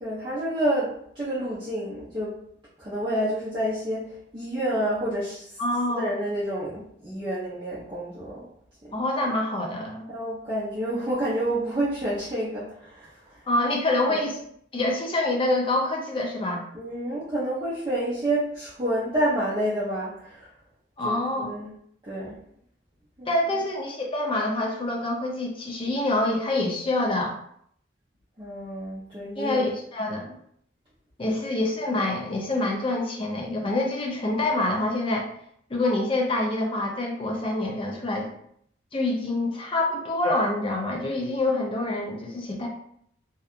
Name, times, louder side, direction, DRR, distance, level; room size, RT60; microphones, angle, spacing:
voice 1, 0.0-2.3 2.8-5.5 5.9-8.5 10.1-13.4 14.1-14.2 16.7-20.5 21.0-21.7 22.0-22.4 23.2-23.3 28.4-29.6 31.3-31.4, right 1 dB, 25° right, -10 dB, 0.6 m, -29 dB
voice 2, 5.6-6.1 8.9-10.1 13.5-14.4 14.7-16.6 21.0-21.5 23.3-27.4 29.4-30.3 31.2-35.3 35.7-38.3 38.9-42.7, left 2 dB, 25° left, 0 dB, 0.4 m, -26 dB
2.7 x 2.3 x 2.4 m, 0.68 s
head